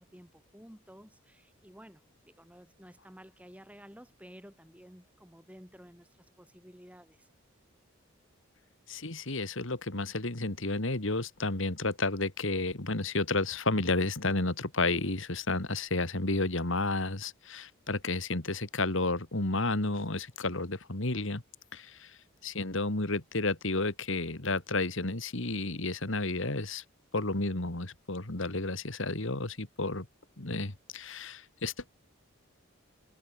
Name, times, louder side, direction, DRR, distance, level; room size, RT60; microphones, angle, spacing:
voice 1, 0.0-7.3, equal, 5° right, 5.8 m, -53 dB
voice 2, 8.9-21.4 21.7-22.2 22.4-26.8 27.1-30.1 30.4-31.9, left 2 dB, 65° left, 2.2 m, -31 dB
head